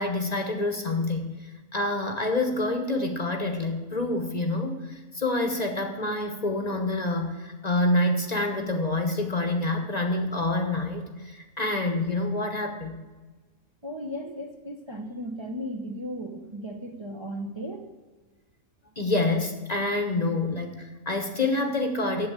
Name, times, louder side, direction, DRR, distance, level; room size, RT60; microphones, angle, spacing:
voice 1, 0.0-13.0 19.0-22.3, left 2 dB, 35° left, 4 dB, 1.0 m, -27 dB
voice 2, 13.8-17.9, equal, 25° right, 1 dB, 0.8 m, -36 dB
8.2 x 7.5 x 8.8 m, 1.3 s
omnidirectional pair, 1.4 m